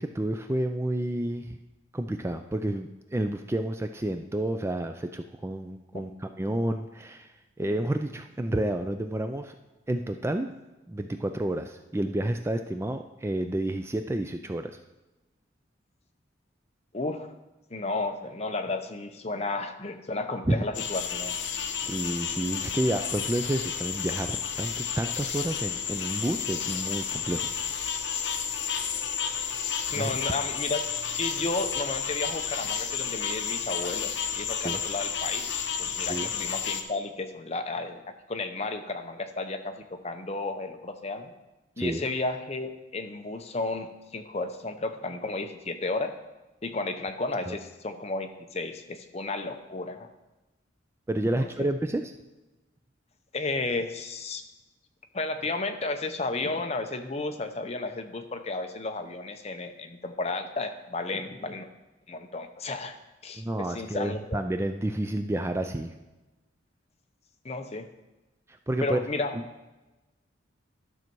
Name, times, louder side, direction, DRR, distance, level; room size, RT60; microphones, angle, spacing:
voice 1, 0.0-1.6 1.9-7.3 7.6-9.5 9.9-10.5 10.9-14.7 20.5-20.6 21.8-27.5 29.9-30.1 34.6-34.8 36.1-36.3 41.8-42.0 47.5-47.6 51.1-52.1 63.4-65.9 68.7-69.0 69.3-69.4, right 1 dB, 15° right, 7 dB, 0.3 m, -30 dB
voice 2, 16.9-17.3 17.7-21.3 29.9-30.9 31.2-35.5 35.8-38.0 38.3-41.3 41.8-46.2 46.6-50.1 51.4-51.7 53.3-54.4 55.1-61.7 62.1-63.0 63.2-64.4 67.4-67.9 68.8-69.4, left 3 dB, 35° left, 7 dB, 0.7 m, -33 dB
sound 1, 20.7-36.8, left 7 dB, 65° left, 0.9 m, -31 dB
12.0 x 6.4 x 4.6 m, 1.1 s
head